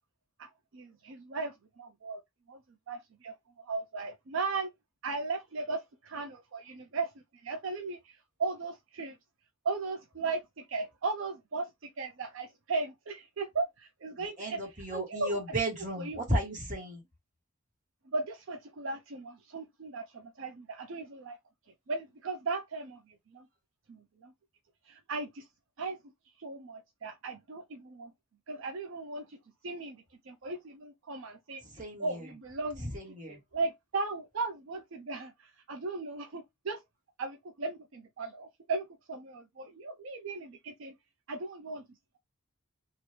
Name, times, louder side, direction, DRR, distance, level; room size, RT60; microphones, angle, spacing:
voice 1, 0.4-2.2 2.5-2.6 2.9-3.3 3.6-4.7 5.0-7.1 7.4-9.2 9.6-14.6 14.9-15.4 16.0-16.4 18.1-21.4 21.9-23.5 23.9-24.3 24.9-25.5 25.8-26.0 26.4-28.1 28.5-29.4 29.6-31.6 32.0-33.0 33.3-36.8 37.2-40.9 41.3-41.9, right 3 dB, 65° right, 0.5 m, -37 dB
voice 2, 14.2-17.0 31.8-32.2 32.9-33.4, right 1 dB, 35° right, 1.3 m, -34 dB
2.9 x 2.5 x 3.2 m
head